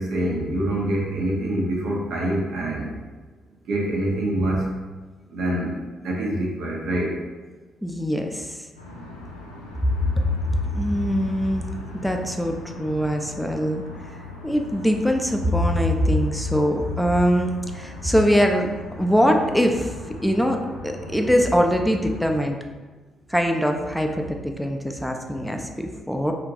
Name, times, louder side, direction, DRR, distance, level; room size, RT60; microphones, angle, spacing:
voice 1, 0.0-2.9 3.7-4.8 5.3-7.1, right 1 dB, 60° right, -2 dB, 0.5 m, -25 dB
voice 2, 7.8-8.6 10.2-11.7 11.9-13.8 14.4-18.7 19.0-20.6 20.8-22.6 23.3-26.3, equal, ahead, 3 dB, 0.3 m, -22 dB
sound 1, 8.7-22.4, left 2 dB, 85° left, 0.3 m, -39 dB
2.5 x 2.2 x 2.7 m, 1.3 s
figure-of-eight pair, 40°, 0 cm